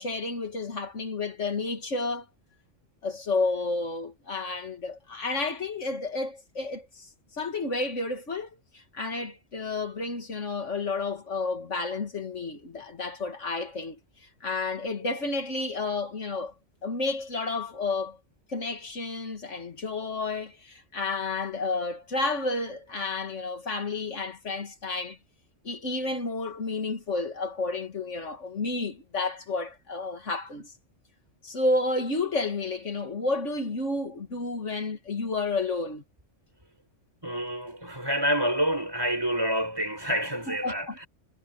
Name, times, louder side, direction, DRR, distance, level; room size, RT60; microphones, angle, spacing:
voice 1, 0.0-2.3 3.0-7.1 7.3-14.0 14.4-16.5 16.8-18.2 18.5-25.2 25.6-30.7 31.4-36.0 40.5-41.0, left 3 dB, 70° left, 2.2 m, -31 dB
voice 2, 37.2-41.1, equal, 20° right, 6.2 m, -28 dB
omnidirectional pair, 1.3 m